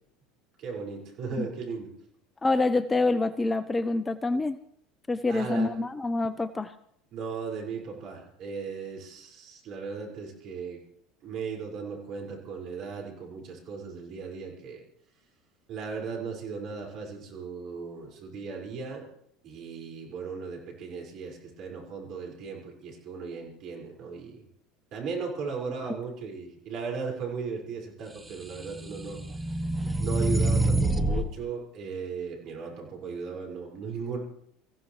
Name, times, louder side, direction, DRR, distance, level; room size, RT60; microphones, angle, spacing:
voice 1, 0.6-1.9 5.3-5.8 7.1-10.8 11.2-14.8 15.7-19.1 19.4-24.4 24.9-29.2 30.0-34.2, right 5 dB, 55° right, 0 dB, 5.3 m, -37 dB
voice 2, 2.4-4.6 5.1-6.7 25.8-25.9, left 2 dB, 20° left, 14 dB, 0.6 m, -26 dB
sound 1, 28.3-31.3, right 1 dB, 10° right, 1.2 m, -26 dB
24.5 x 15.5 x 3.2 m, 0.69 s
hypercardioid pair, 75°, 0 cm